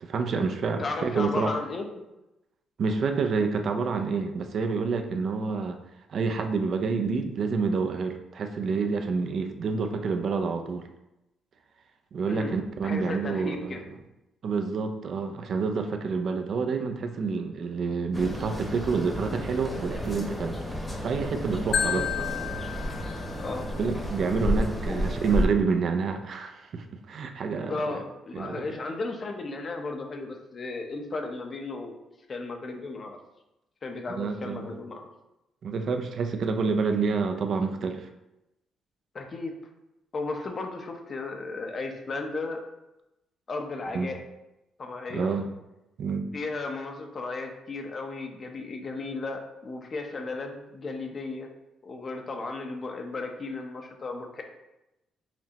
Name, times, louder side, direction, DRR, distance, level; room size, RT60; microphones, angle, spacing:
voice 1, 0.0-1.5 2.8-5.8 6.1-10.9 12.1-13.8 14.4-20.6 21.0-22.1 23.8-27.7 28.3-28.6 34.1-34.7 35.6-38.1 43.9-44.1 45.1-45.5 46.0-46.3, right 4 dB, 60° right, 5 dB, 0.4 m, -28 dB
voice 2, 0.8-2.1 12.3-13.9 21.8-22.3 23.4-23.7 24.9-25.0 27.7-32.0 32.3-33.2 33.8-35.1 39.1-39.5 40.1-42.6 43.5-44.2 44.8-45.3 46.3-51.5 51.8-54.4, left 3 dB, 40° left, 3 dB, 0.6 m, -35 dB
sound 1, 18.1-25.5, equal, 15° left, 0.9 m, -31 dB
Marimba xylophone, 21.7-23.8, left 8 dB, 80° left, 0.6 m, -31 dB
5.8 x 2.1 x 2.8 m, 0.94 s
cardioid pair, 90°, 0 cm